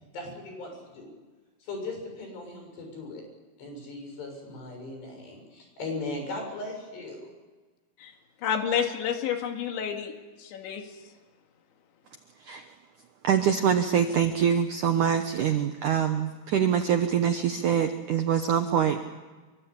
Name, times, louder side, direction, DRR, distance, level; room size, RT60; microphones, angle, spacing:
voice 1, 0.1-1.1 1.6-3.2 3.6-7.3, left 2 dB, 70° left, 3 dB, 9.4 m, -38 dB
voice 2, 8.4-10.1 10.4-10.8, left 8 dB, 90° left, 4 dB, 4.4 m, -29 dB
voice 3, 13.2-19.0, right 8 dB, 75° right, 7 dB, 1.9 m, -24 dB
25.5 x 24.0 x 8.6 m, 1.3 s
omnidirectional pair, 5.1 m